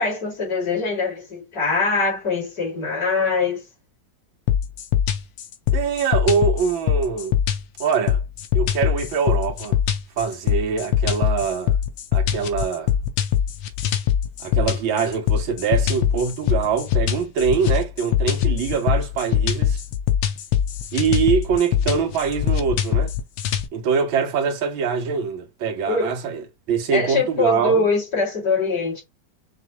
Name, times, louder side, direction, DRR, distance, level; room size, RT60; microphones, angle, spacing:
voice 1, 0.0-3.6 25.8-26.2 26.9-29.0, left 3 dB, 50° left, 2.9 m, -23 dB
sound 1, 4.5-23.7, left 9 dB, 80° left, 1.5 m, -22 dB
voice 2, 5.7-7.4 7.8-8.2 8.5-9.8 10.2-11.8 12.1-12.9 14.4-19.8 20.9-23.1 23.7-26.4 26.7-27.8, right 6 dB, 85° right, 1.7 m, -23 dB
5.8 x 2.5 x 2.9 m
omnidirectional pair, 2.1 m